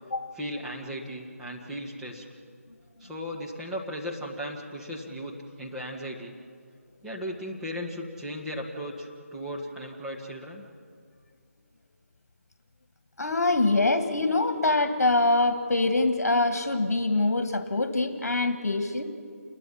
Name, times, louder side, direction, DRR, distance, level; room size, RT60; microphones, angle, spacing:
voice 1, 0.3-2.2 3.0-6.4 7.0-10.6, equal, 5° right, -4 dB, 1.7 m, -36 dB
voice 2, 13.2-19.0, left 2 dB, 70° left, 8 dB, 1.7 m, -24 dB
28.5 x 21.5 x 5.6 m, 2.1 s
figure-of-eight pair, 160°, 8 cm